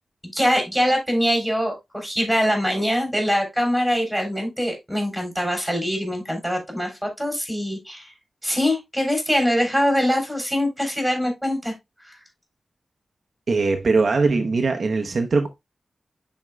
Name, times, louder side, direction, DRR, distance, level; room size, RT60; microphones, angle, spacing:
voice 1, 0.3-8.1 8.4-11.7 12.0-12.1, equal, ahead, 3.2 m, -23 dB
voice 2, 13.5-15.5, right 4 dB, 55° right, 0.8 m, -21 dB
10.5 x 4.4 x 2.2 m
wide cardioid pair, 105°, 0 cm